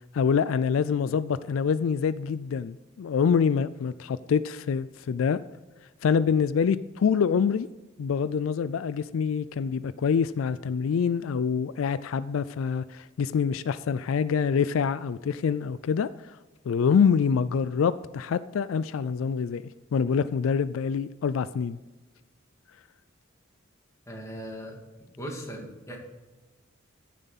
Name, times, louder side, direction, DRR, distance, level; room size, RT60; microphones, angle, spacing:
voice 1, 0.1-5.4 6.0-7.7 8.0-16.4 16.6-19.6 19.9-21.8, left 6 dB, 80° left, 16 dB, 0.4 m, -26 dB
voice 2, 24.1-24.8 25.2-26.0, equal, 15° left, 0 dB, 2.2 m, -38 dB
14.5 x 7.3 x 4.1 m, 1.2 s
head